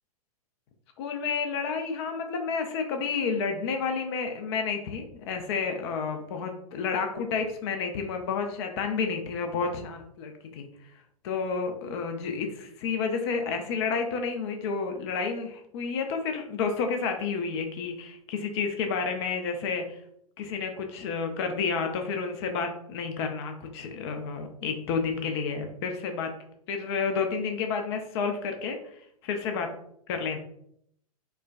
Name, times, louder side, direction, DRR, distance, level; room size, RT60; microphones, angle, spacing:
voice 1, 1.0-10.7 11.2-20.0 20.4-26.3 26.7-29.7 30.1-30.4, left 5 dB, 45° left, 5 dB, 0.5 m, -30 dB
4.4 x 2.2 x 2.4 m, 0.70 s
figure-of-eight pair, 100°, 19 cm